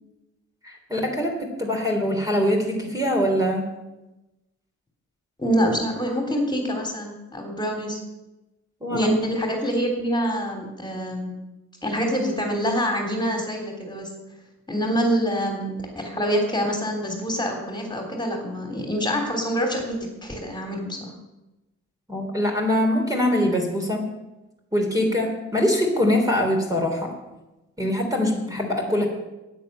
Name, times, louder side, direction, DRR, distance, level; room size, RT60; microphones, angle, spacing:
voice 1, 0.6-3.7 8.8-9.1 22.1-24.1 24.7-27.1 27.8-29.1, left 1 dB, 10° right, 1 dB, 3.2 m, -23 dB
voice 2, 5.4-8.0 8.9-11.3 11.8-14.1 14.7-21.1, equal, 15° left, 2 dB, 3.4 m, -26 dB
10.5 x 9.1 x 8.8 m, 1.0 s
cardioid pair, 90°, 30 cm